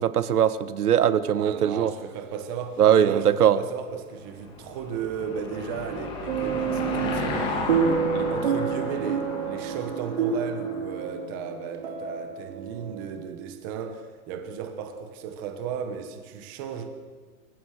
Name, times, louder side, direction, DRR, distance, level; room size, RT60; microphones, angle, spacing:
voice 1, 0.0-1.9 2.8-3.6, right 9 dB, 80° right, 1.4 m, -21 dB
voice 2, 1.4-16.9, right 7 dB, 15° right, 1.1 m, -35 dB
Car passing by / Engine, 4.0-10.8, left 3 dB, 10° left, 2.0 m, -34 dB
sound 1, 6.3-13.3, right 6 dB, 45° right, 2.8 m, -29 dB
28.0 x 15.0 x 6.5 m
hypercardioid pair, 180°, 45 cm